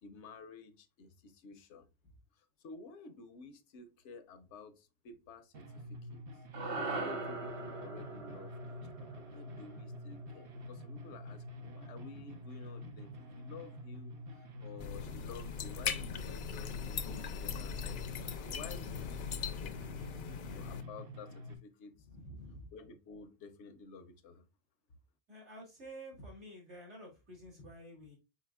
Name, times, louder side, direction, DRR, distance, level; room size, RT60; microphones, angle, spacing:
voice 1, 0.0-1.9 2.4-5.6 5.9-6.2 6.9-19.8 20.5-21.9 22.7-24.5, left 4 dB, 85° left, 1.0 m, -52 dB
sound 1, 5.5-21.6, left 1 dB, 55° right, 0.9 m, -47 dB
sound 2, 6.5-11.0, right 3 dB, 40° right, 0.6 m, -42 dB
sound 3, 14.8-20.8, left 7 dB, 60° left, 0.6 m, -40 dB
voice 2, 22.0-22.7 25.3-28.2, equal, 75° right, 2.5 m, -50 dB
4.9 x 4.8 x 2.3 m
omnidirectional pair, 1.2 m